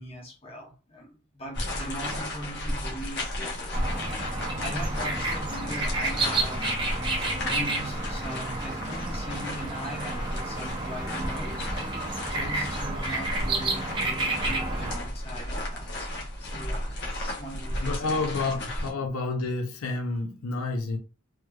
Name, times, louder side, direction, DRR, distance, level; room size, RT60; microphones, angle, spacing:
voice 1, 0.0-6.6 7.4-11.7 12.3-18.2 18.5-18.6, equal, 25° left, 0.9 m, -40 dB
sound 1, 1.5-18.9, left 1 dB, 50° left, 1.0 m, -34 dB
sound 2, 3.7-15.0, right 2 dB, 20° right, 0.6 m, -31 dB
voice 2, 17.8-21.0, left 3 dB, 80° left, 0.5 m, -29 dB
3.1 x 3.1 x 2.3 m
head